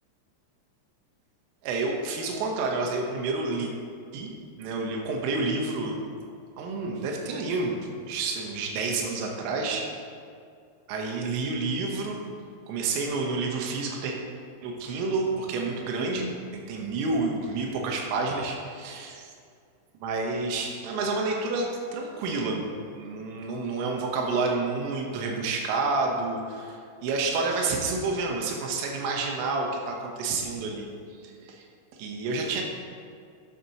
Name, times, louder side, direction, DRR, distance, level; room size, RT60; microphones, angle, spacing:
voice 1, 1.6-3.7 4.1-4.3 4.6-6.0 6.6-7.8 8.1-10.0 10.9-12.2 12.7-14.2 14.6-19.3 20.0-22.7 22.9-30.9 31.2-31.7 32.0-32.6, right 3 dB, 80° right, 0 dB, 3.7 m, -29 dB
12.5 x 10.0 x 3.0 m, 2.3 s
omnidirectional pair, 5.7 m